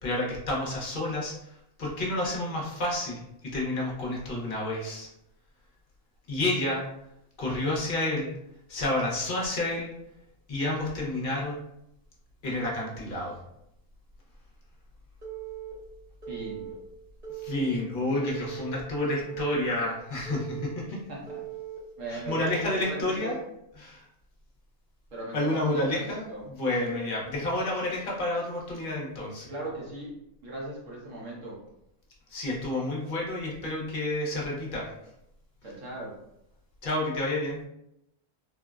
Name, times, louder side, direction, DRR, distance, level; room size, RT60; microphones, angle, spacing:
voice 1, 0.0-5.1 6.3-6.8 7.4-8.3 8.7-9.9 10.5-11.6 12.4-13.4 17.4-21.0 22.1-23.4 23.8-24.0 25.3-29.5 32.3-34.9 36.8-37.6, left 1 dB, 50° left, -3 dB, 0.7 m, -30 dB
Telephone, 15.2-15.7 16.2-16.7 17.2-17.7 18.2-18.8 19.2-19.8 20.3-20.8 21.3-21.8 22.3-22.8, right 12 dB, 35° right, 0.8 m, -39 dB
voice 2, 16.3-16.7 21.1-21.4 22.0-23.4 25.1-26.4 29.5-30.2 30.4-31.6 35.6-36.2, right 1 dB, 70° right, -4 dB, 1.3 m, -38 dB
3.7 x 2.0 x 2.3 m, 0.81 s
omnidirectional pair, 1.4 m